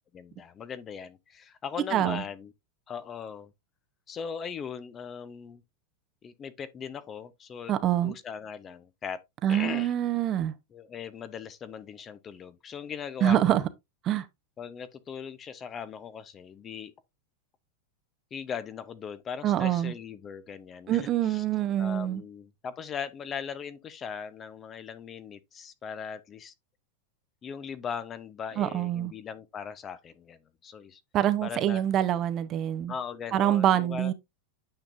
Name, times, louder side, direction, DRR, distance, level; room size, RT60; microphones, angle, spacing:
voice 1, 0.1-2.5 2.9-3.5 4.1-5.6 6.2-7.7 8.0-9.2 9.5-9.9 10.7-13.6 14.6-16.9 18.3-21.4 21.8-26.5 27.4-31.0 31.4-31.8 32.9-34.1, left 7 dB, 25° left, 0.7 m, -39 dB
voice 2, 1.9-2.2 7.7-8.1 9.4-10.5 13.2-13.6 14.0-14.2 19.4-19.9 20.9-22.2 28.6-29.1 31.1-32.9 33.3-34.1, right 11 dB, 35° right, 0.7 m, -25 dB
8.9 x 5.2 x 2.6 m
supercardioid pair, 135°, 0 cm